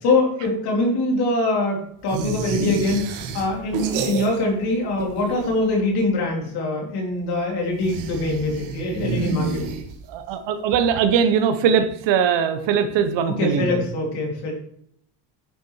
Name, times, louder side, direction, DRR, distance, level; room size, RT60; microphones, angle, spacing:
voice 1, 0.0-3.0 3.3-9.7 13.4-14.5, left 2 dB, 50° left, -1 dB, 3.4 m, -23 dB
sound 1, 2.1-4.7 4.9-5.7 7.7-10.2, right 5 dB, 80° right, 1.7 m, -29 dB
voice 2, 10.1-13.8, right 7 dB, 60° right, 8 dB, 1.1 m, -21 dB
10.5 x 5.8 x 4.7 m, 0.68 s
cardioid pair, 175°, 49 cm